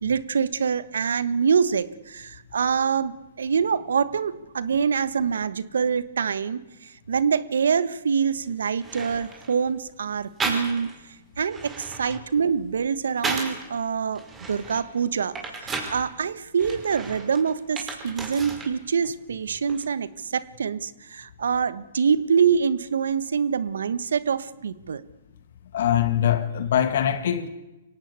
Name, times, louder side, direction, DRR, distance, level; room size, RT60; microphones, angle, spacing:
voice 1, 0.0-11.0 11.4-25.0, right 6 dB, 80° right, 1.3 m, -25 dB
sound 1, 8.3-8.4 8.8-9.6 10.4-11.0 11.4-13.7 14.1-16.0 16.6-18.7 19.0-19.8, right 3 dB, 15° right, 5.4 m, -34 dB
voice 2, 25.7-27.5, left 10 dB, 65° left, 2.1 m, -22 dB
24.5 x 18.0 x 8.3 m
hypercardioid pair, 130°, 0 cm